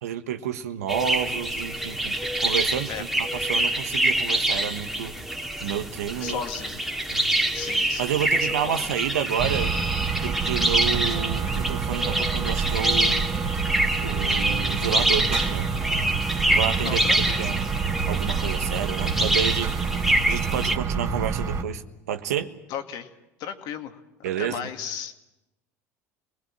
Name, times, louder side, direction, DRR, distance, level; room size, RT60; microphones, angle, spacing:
voice 1, 0.0-5.1 5.6-6.4 7.1-7.3 8.0-9.7 10.2-13.2 14.0-15.7 16.5-17.6 18.0-19.7 20.3-21.8 22.1-22.5 24.2-24.6, right 9 dB, 80° right, 8 dB, 1.4 m, -30 dB
sound 1, 0.9-20.8, right 1 dB, 5° right, 2.1 m, -26 dB
voice 2, 6.2-6.8 7.5-8.9 11.5-11.6 16.8-17.5 22.7-23.1 23.4-25.1, left 8 dB, 60° left, 6 dB, 2.2 m, -35 dB
sound 2, 9.4-21.6, right 5 dB, 45° right, 3.3 m, -28 dB
26.5 x 21.0 x 7.6 m, 0.96 s
hypercardioid pair, 70°, 8 cm